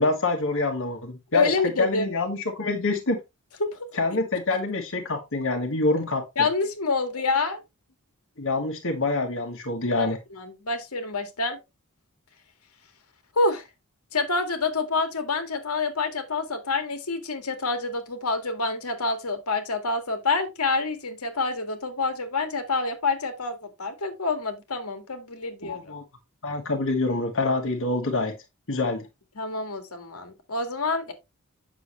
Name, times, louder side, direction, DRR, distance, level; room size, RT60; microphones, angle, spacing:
voice 1, 0.0-3.2 3.9-6.5 8.4-10.2 25.6-26.0 26.4-28.3 28.7-29.1, left 2 dB, 65° left, 1.6 m, -26 dB
voice 2, 1.3-2.1 3.6-3.8 6.4-7.6 10.0-10.1 10.4-11.6 13.4-13.6 14.1-25.9 29.4-31.1, left 3 dB, 85° left, 2.0 m, -27 dB
8.6 x 6.7 x 3.2 m
head